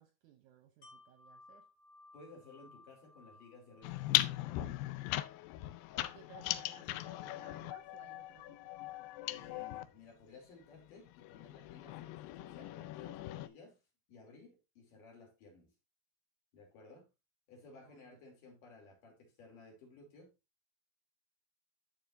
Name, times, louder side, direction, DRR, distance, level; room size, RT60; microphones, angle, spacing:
voice 1, 0.0-1.7 5.9-8.6 17.7-18.1, right 9 dB, 75° right, 1.9 m, -60 dB
Wind chime, 0.8-6.6 7.0-7.1, left 2 dB, 45° left, 2.7 m, -62 dB
voice 2, 2.1-4.4 9.2-13.8 14.1-15.7 16.5-17.1 17.5-20.3, left 3 dB, 65° left, 4.4 m, -57 dB
sound 1, 3.8-9.9 10.7-13.5, left 16 dB, 80° left, 2.3 m, -38 dB
13.0 x 5.2 x 2.6 m
omnidirectional pair, 4.2 m